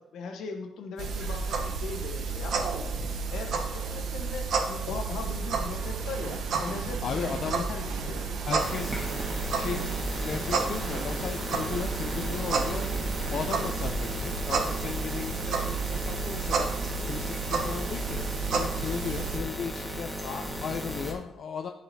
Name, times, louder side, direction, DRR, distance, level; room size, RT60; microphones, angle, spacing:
voice 1, 0.1-2.8 3.3-8.2 20.2-20.5, left 4 dB, 70° left, 4 dB, 1.1 m, -39 dB
sound 1, 1.0-19.4, right 5 dB, 60° right, 0.9 m, -31 dB
Train, 3.2-18.4 19.0-19.1, right 4 dB, 85° right, 0.9 m, -44 dB
voice 2, 7.0-7.7 8.4-9.0 9.5-12.8 13.3-16.7 17.0-18.3 18.5-20.1 20.6-21.7, left 6 dB, 45° left, 5 dB, 0.4 m, -35 dB
sound 2, 8.6-21.1, equal, 10° right, 1.5 m, -36 dB
13.5 x 4.8 x 2.7 m, 0.92 s
cardioid pair, 165°, 0 cm